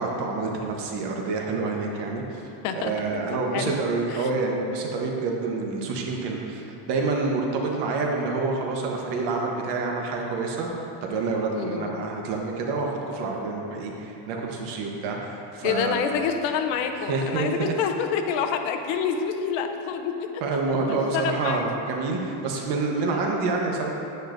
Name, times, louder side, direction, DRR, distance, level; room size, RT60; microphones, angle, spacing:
voice 1, 0.0-2.4 2.7-10.7 11.0-16.0 17.1-17.7 20.4-23.9, right 3 dB, 55° right, 0 dB, 1.1 m, -27 dB
voice 2, 3.3-3.7 4.1-4.3 11.5-11.9 15.6-20.3 20.9-21.6, left 7 dB, 65° left, 5 dB, 0.8 m, -27 dB
9.7 x 9.0 x 2.6 m, 2.8 s
cardioid pair, 160°, 48 cm